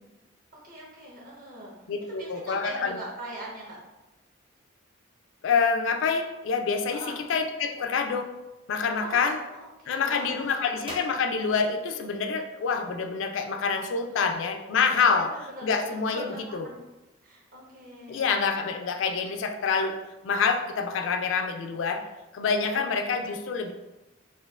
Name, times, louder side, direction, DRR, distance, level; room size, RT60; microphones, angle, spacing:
voice 1, 0.6-1.7 2.1-3.8 6.9-7.2 9.0-10.8 14.1-14.4 15.2-16.8 17.2-18.5 19.1-19.2 22.6-23.3, right 1 dB, 45° right, -4 dB, 0.9 m, -42 dB
voice 2, 1.9-3.0 5.4-7.0 7.3-8.3 8.7-9.4 9.9-15.3 15.6-16.6 18.1-20.0 20.2-22.0 22.3-23.7, left 5 dB, 70° left, 6 dB, 0.3 m, -26 dB
Gunshot gunfire, 8.9-9.4 10.8-12.3, right 2 dB, 25° right, 0.4 m, -45 dB
4.3 x 2.4 x 2.3 m, 1.0 s
head